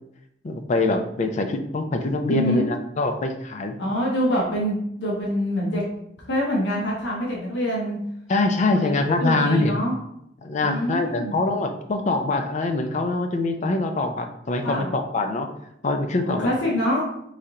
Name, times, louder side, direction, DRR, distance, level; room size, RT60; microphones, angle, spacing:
voice 1, 0.4-3.8 8.3-9.8 10.4-15.5 15.8-16.5, left 2 dB, 40° left, 6 dB, 0.4 m, -24 dB
voice 2, 2.3-2.7 3.8-5.8 6.3-8.0 8.7-9.9 10.6-11.4 14.6-14.9 16.2-17.1, equal, 75° left, -3 dB, 0.9 m, -25 dB
3.3 x 2.8 x 3.6 m, 0.77 s
head